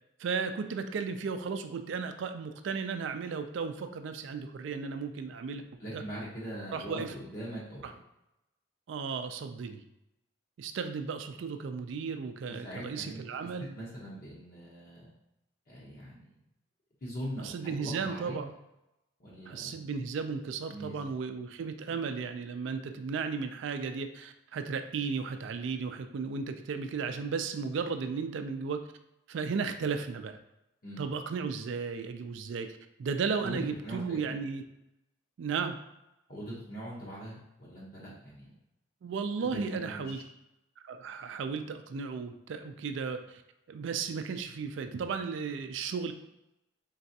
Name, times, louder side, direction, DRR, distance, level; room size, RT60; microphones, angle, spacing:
voice 1, 0.2-5.6 5.9-6.0 6.7-7.1 7.8-7.9 8.9-9.8 10.6-13.7 17.4-18.5 19.5-28.9 29.3-30.4 31.0-34.6 35.4-35.8 39.0-40.2 40.8-43.4 43.7-46.1, right 5 dB, 65° right, 8 dB, 0.3 m, -35 dB
voice 2, 5.8-7.8 12.6-15.1 15.7-16.2 17.0-18.3 19.2-19.8 20.7-21.0 21.8-21.9 30.8-31.0 33.4-33.6 33.8-34.4 36.3-38.5 39.4-40.2, equal, 45° left, -6 dB, 0.8 m, -42 dB
3.9 x 3.3 x 2.7 m, 0.89 s
head